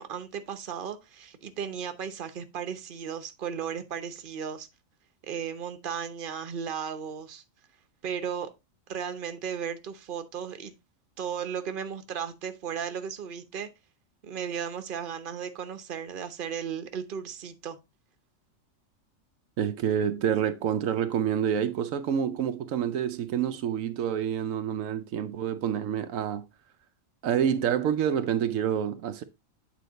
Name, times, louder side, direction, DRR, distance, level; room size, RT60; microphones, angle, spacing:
voice 1, 0.0-4.7 5.3-7.4 8.0-8.5 8.9-10.7 11.2-13.7 14.2-17.8, right 7 dB, 45° right, 1.0 m, -35 dB
voice 2, 19.6-26.5 27.2-29.2, right 9 dB, 85° right, 1.1 m, -28 dB
8.5 x 3.8 x 3.9 m
omnidirectional pair, 1.3 m